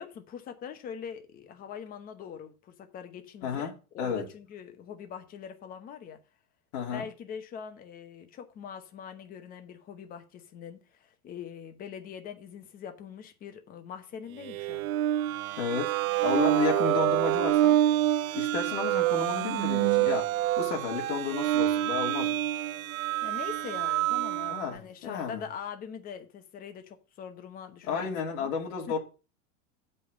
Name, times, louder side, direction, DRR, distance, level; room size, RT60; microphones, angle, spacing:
voice 1, 0.0-6.2 6.9-14.9 23.2-28.1 28.4-28.5 28.9-29.0, left 7 dB, 20° left, 1.0 m, -43 dB
voice 2, 3.4-3.7 4.0-4.3 6.7-7.0 15.6-17.8 18.3-20.3 20.6-22.4 24.5-25.4 27.9-29.0, left 6 dB, 60° left, 3.0 m, -32 dB
sound 1, 14.4-24.7, right 14 dB, 70° right, 0.7 m, -27 dB
7.6 x 5.4 x 6.3 m
supercardioid pair, 160°, 43 cm